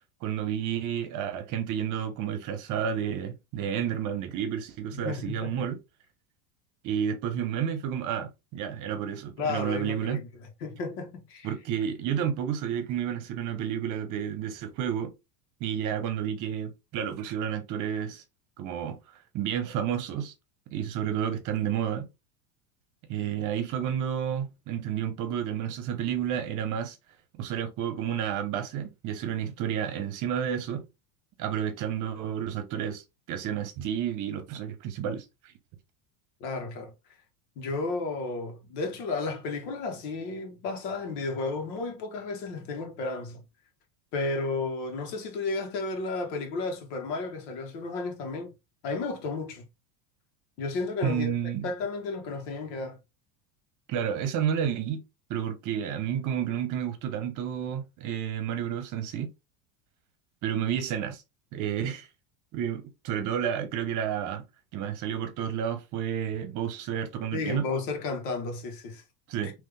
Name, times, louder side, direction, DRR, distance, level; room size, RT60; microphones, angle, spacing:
voice 1, 0.2-5.8 6.8-10.2 11.4-15.1 15.6-18.2 18.6-19.0 19.3-20.3 20.7-22.1 23.1-27.0 27.4-30.9 31.4-35.5 51.0-51.7 53.9-55.0 55.3-59.3 60.4-61.2 61.5-62.1 62.5-64.4 64.7-67.7 69.3-69.5, right 9 dB, 40° right, 1.0 m, -31 dB
voice 2, 4.9-5.7 9.4-10.3 10.6-11.5 36.4-36.9 37.5-43.4 44.1-48.5 48.8-49.6 50.6-51.3 51.6-53.0 67.3-69.0 69.4-69.5, left 3 dB, 75° left, 1.7 m, -33 dB
3.8 x 3.1 x 3.4 m
supercardioid pair, 155°, 49 cm